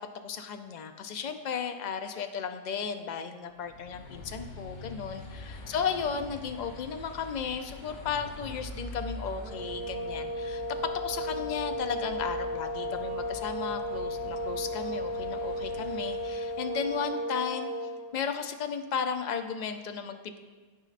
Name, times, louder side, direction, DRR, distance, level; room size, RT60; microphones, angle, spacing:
voice 1, 0.2-10.6 11.0-20.4, left 6 dB, 70° left, 7 dB, 0.4 m, -35 dB
sound 1, 3.5-17.0, left 1 dB, 45° left, 0.9 m, -45 dB
sound 2, 9.4-18.1, equal, 60° right, 2.5 m, -34 dB
13.0 x 5.1 x 2.5 m, 1.4 s
omnidirectional pair, 1.3 m